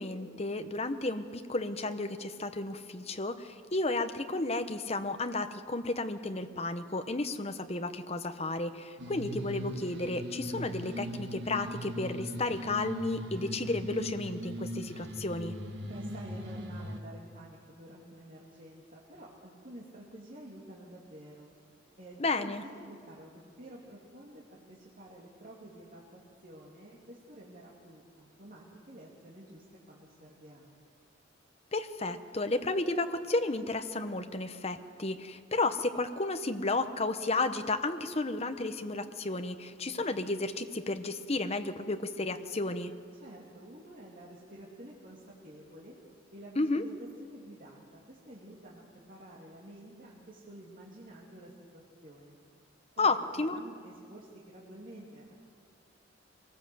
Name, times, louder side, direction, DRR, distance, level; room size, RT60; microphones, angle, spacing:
voice 1, 0.0-15.5 22.2-22.6 31.7-42.9 46.6-46.8 53.0-53.6, left 2 dB, 30° left, 8 dB, 1.0 m, -32 dB
sound 1, 9.0-17.0, equal, 60° right, 1.7 m, -39 dB
voice 2, 15.8-21.5 22.0-26.0 26.4-30.7 43.1-45.9 46.3-52.4 53.0-55.3, right 1 dB, 45° right, -5 dB, 2.7 m, -50 dB
25.0 x 19.0 x 7.8 m, 2.2 s
head